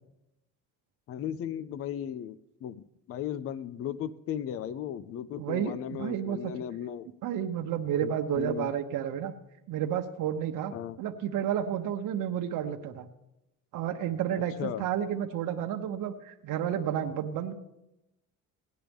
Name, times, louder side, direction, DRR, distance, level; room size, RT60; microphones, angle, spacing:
voice 1, 1.1-7.1 8.0-8.7 10.7-11.0 14.6-14.9, left 10 dB, 45° left, 16 dB, 0.5 m, -36 dB
voice 2, 5.4-6.5 7.2-9.3 9.7-13.1 13.7-17.5, right 9 dB, 65° right, 3 dB, 0.9 m, -31 dB
17.0 x 10.5 x 3.5 m, 0.88 s
cardioid pair, 145°, 34 cm